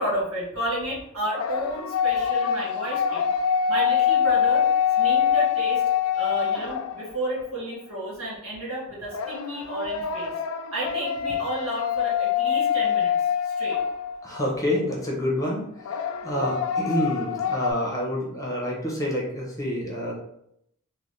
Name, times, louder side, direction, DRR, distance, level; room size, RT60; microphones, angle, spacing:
voice 1, 0.0-3.3 3.7-4.6 5.0-5.8 6.1-10.3 10.7-13.1 13.4-13.8, right 1 dB, 70° right, -4 dB, 1.5 m, -31 dB
sound 1, 1.2-7.3 9.1-14.4 15.8-17.7, left 8 dB, 70° left, 0.3 m, -25 dB
voice 2, 14.2-20.1, equal, 15° left, -3 dB, 0.9 m, -28 dB
4.0 x 2.2 x 3.3 m, 0.74 s
head